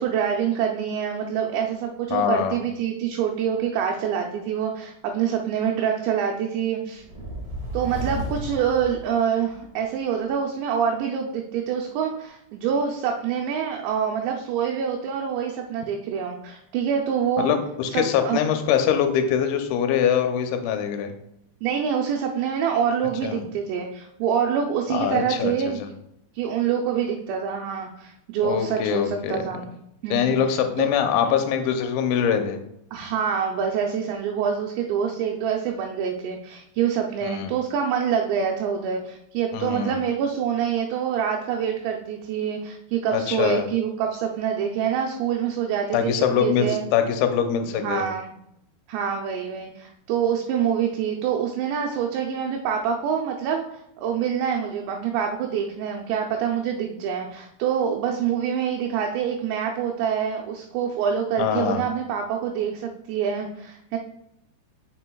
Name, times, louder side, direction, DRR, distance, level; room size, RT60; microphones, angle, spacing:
voice 1, 0.0-7.0 7.7-17.5 17.9-18.4 21.6-25.8 26.3-29.7 30.0-30.3 30.8-30.9 31.3-31.4 32.9-46.1 46.4-46.8 47.8-48.3 48.9-53.6 54.0-64.0, right 8 dB, 80° right, 1 dB, 2.7 m, -26 dB
voice 2, 2.1-2.6 17.4-21.1 23.2-23.4 24.9-25.5 25.8-25.9 28.4-29.4 30.1-32.6 37.2-37.5 39.5-40.0 43.1-43.6 45.9-48.1 61.4-61.9, left 8 dB, 85° left, 6 dB, 3.0 m, -23 dB
sound 1, 7.0-9.7, right 1 dB, 65° right, 1.2 m, -33 dB
7.6 x 6.0 x 2.2 m, 0.79 s
omnidirectional pair, 5.2 m